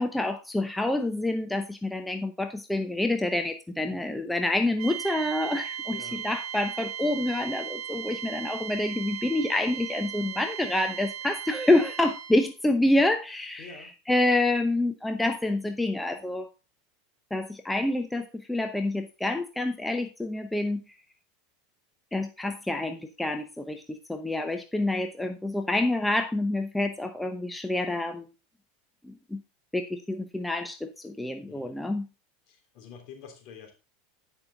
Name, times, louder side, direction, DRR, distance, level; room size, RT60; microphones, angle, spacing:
voice 1, 0.0-16.5 17.3-20.8 22.1-28.3 29.0-29.4 29.7-32.0, left 2 dB, 5° left, 6 dB, 0.8 m, -27 dB
sound 1, 4.8-12.5, right 9 dB, 55° right, 1.0 m, -37 dB
voice 2, 5.9-6.2 13.6-13.9 31.5-31.8 32.5-33.7, left 6 dB, 55° left, 3 dB, 3.0 m, -47 dB
9.7 x 5.6 x 3.9 m, 0.30 s
hypercardioid pair, 100°, 0 cm